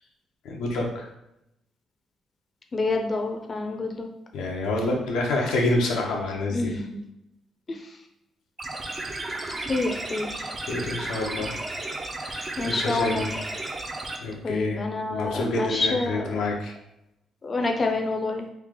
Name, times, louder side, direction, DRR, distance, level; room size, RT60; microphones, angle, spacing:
voice 1, 0.4-1.1 4.3-6.7 10.7-11.6 12.2-13.3 14.2-14.8 15.1-16.7, left 2 dB, 85° left, 0 dB, 0.7 m, -27 dB
voice 2, 2.7-4.1 6.5-7.0 7.7-8.0 9.6-10.5 12.6-13.4 14.4-16.4 17.4-18.5, left 3 dB, 35° left, 3 dB, 0.6 m, -28 dB
sound 1, 8.6-14.2, right 2 dB, 30° right, 0.5 m, -33 dB
3.3 x 2.4 x 3.6 m, 0.84 s
cardioid pair, 90°, 0 cm